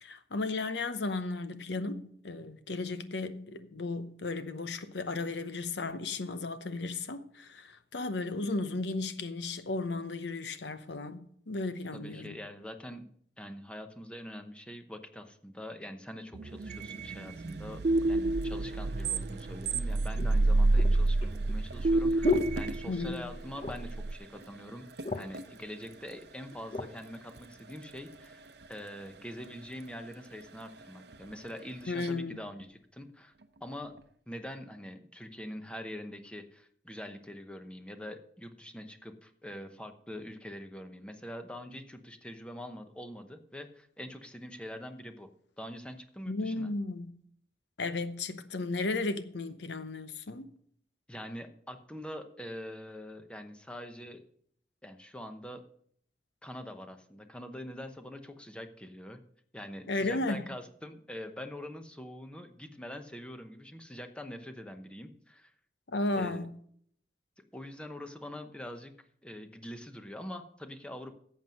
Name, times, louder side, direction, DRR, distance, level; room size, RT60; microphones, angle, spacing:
voice 1, 0.0-11.2 11.5-12.4 22.9-23.2 31.9-32.4 46.3-47.1 47.8-50.5 59.9-60.4 65.9-66.5, left 3 dB, 85° left, 0.8 m, -34 dB
voice 2, 11.9-13.1 13.4-24.9 25.1-33.3 33.6-33.9 34.3-45.3 45.6-46.7 51.1-54.2 54.8-55.6 56.4-59.2 59.5-65.5 66.1-66.5 67.5-68.9 69.2-71.1, left 1 dB, 5° left, 0.9 m, -44 dB
sound 1, 16.3-24.1, right 2 dB, 40° right, 0.4 m, -29 dB
sound 2, 16.5-34.2, right 2 dB, 65° right, 0.7 m, -50 dB
sound 3, 19.2-19.3 20.2-23.3 23.6-24.0 24.4-24.5 24.8-25.5 26.2-26.9 27.6-27.7, left 3 dB, 35° left, 0.7 m, -35 dB
11.5 x 7.7 x 5.3 m
head